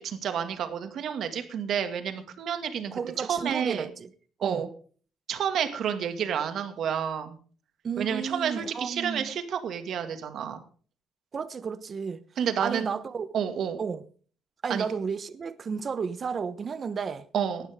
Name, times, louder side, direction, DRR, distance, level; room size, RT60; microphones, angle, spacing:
voice 1, 0.0-2.9 3.2-3.9 4.4-4.7 5.3-7.4 8.0-10.6 12.4-12.9 13.3-13.8 14.7-14.9 17.3-17.7, right 8 dB, 60° right, 2.1 m, -30 dB
voice 2, 2.9-4.1 4.4-4.6 7.8-9.3 11.3-12.2 12.6-13.3 13.8-14.0 14.6-17.3, right 6 dB, 35° right, 1.0 m, -32 dB
19.0 x 12.5 x 3.7 m
cardioid pair, 135°, 0 cm